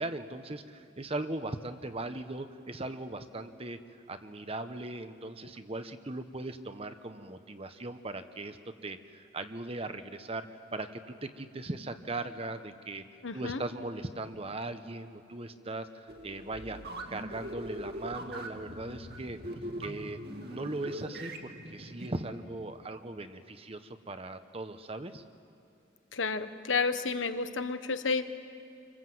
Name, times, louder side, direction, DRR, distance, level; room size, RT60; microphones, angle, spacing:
voice 1, 0.0-3.8 4.1-8.6 8.8-13.0 13.3-19.5 19.8-20.2 20.5-25.2, right 2 dB, 30° right, 9 dB, 1.0 m, -39 dB
voice 2, 13.2-13.6 26.1-28.2, left 4 dB, 80° left, 10 dB, 1.3 m, -31 dB
sound 1, 16.1-22.1, equal, 55° right, 2.2 m, -42 dB
28.0 x 25.0 x 7.9 m, 2.5 s
head